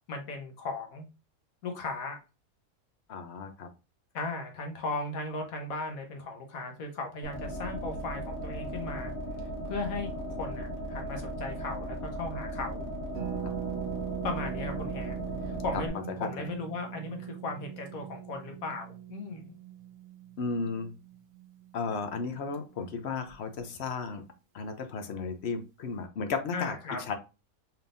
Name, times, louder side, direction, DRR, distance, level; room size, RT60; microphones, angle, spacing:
voice 1, 0.1-1.0 1.6-2.2 4.1-9.1 9.7-12.9 14.2-15.2 15.4-19.5 26.5-27.0, left 3 dB, 70° left, 3 dB, 1.5 m, -37 dB
voice 2, 3.1-3.7 13.4-13.5 16.2-16.5 20.4-20.9 21.7-24.2 24.5-27.1, left 4 dB, 55° left, 6 dB, 0.8 m, -34 dB
sound 1, 7.2-15.9, equal, 20° right, 1.3 m, -37 dB
Harp, 13.1-22.8 23.0-23.1 23.3-23.6, right 11 dB, 50° right, 1.0 m, -41 dB
4.4 x 3.5 x 2.5 m, 0.30 s
omnidirectional pair, 1.5 m